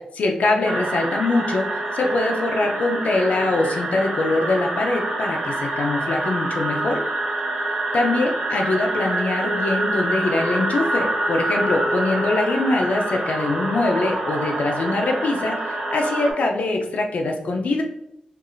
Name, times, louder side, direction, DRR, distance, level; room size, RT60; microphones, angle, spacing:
voice 1, 0.1-7.0 7.9-17.8, left 2 dB, 70° left, 2 dB, 0.5 m, -23 dB
sound 1, 0.6-16.3, right 1 dB, 70° right, 1.1 m, -26 dB
4.6 x 2.4 x 2.5 m, 0.83 s
wide cardioid pair, 160°, 3 cm